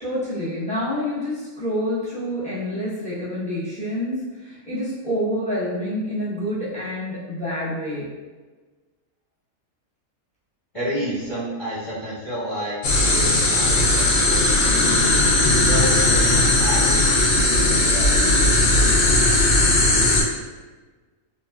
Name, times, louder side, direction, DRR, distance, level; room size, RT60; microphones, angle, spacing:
voice 1, 0.0-8.1, equal, 10° left, -10 dB, 0.5 m, -27 dB
voice 2, 10.7-15.2 15.6-18.2, right 1 dB, 25° left, -13 dB, 1.0 m, -30 dB
sound 1, 12.8-20.2, left 2 dB, 70° left, 0.5 m, -18 dB
3.2 x 2.1 x 2.2 m, 1.3 s
omnidirectional pair, 1.5 m